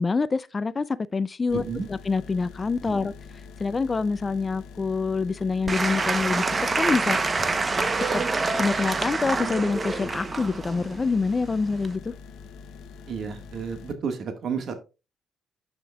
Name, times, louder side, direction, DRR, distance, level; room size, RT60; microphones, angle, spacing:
voice 1, 0.0-1.6 1.9-7.2 8.0-8.1 8.6-12.1, left 4 dB, 30° left, 0.3 m, -26 dB
sound 1, 1.5-14.0, left 5 dB, 90° left, 0.6 m, -44 dB
voice 2, 1.5-1.9 2.8-3.0 13.1-14.8, right 6 dB, 60° right, 1.5 m, -31 dB
Applause / Crowd, 5.7-12.0, right 3 dB, 30° right, 0.7 m, -27 dB
13.0 x 5.0 x 2.3 m
cardioid pair, 90°, 0 cm